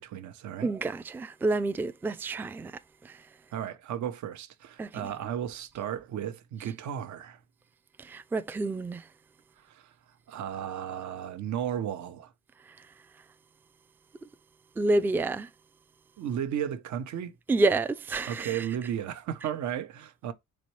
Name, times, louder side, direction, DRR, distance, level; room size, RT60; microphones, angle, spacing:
voice 1, 0.0-0.7 3.5-7.4 9.6-9.9 10.3-12.3 16.2-17.4 18.3-20.3, right 9 dB, 70° right, 0.8 m, -34 dB
voice 2, 0.6-3.2 4.8-5.1 8.0-9.1 14.8-15.5 17.5-18.7, right 2 dB, 5° right, 0.3 m, -29 dB
4.1 x 3.2 x 3.1 m
cardioid pair, 90°, 30 cm